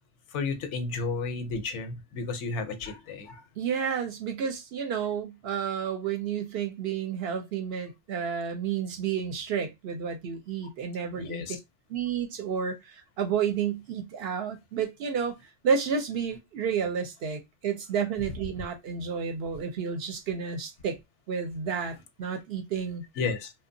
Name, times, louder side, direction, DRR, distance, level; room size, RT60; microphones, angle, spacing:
voice 1, 0.3-3.4 11.2-11.6 23.2-23.5, left 4 dB, 80° left, 0.9 m, -32 dB
voice 2, 3.6-11.4 11.9-15.4 15.6-21.0 21.3-23.0, right 7 dB, 65° right, 0.7 m, -31 dB
2.8 x 2.2 x 2.6 m
omnidirectional pair, 1.2 m